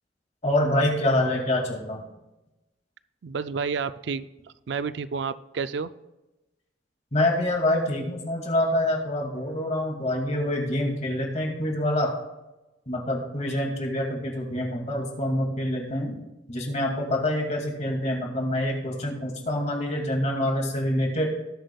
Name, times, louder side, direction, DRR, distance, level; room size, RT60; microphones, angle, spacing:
voice 1, 0.4-2.0 7.1-12.1 12.9-16.2 16.5-21.3, left 1 dB, 35° left, 1 dB, 2.3 m, -26 dB
voice 2, 3.2-4.3 4.7-5.9, right 5 dB, 65° right, 13 dB, 0.4 m, -30 dB
19.5 x 7.9 x 2.3 m, 1.0 s
head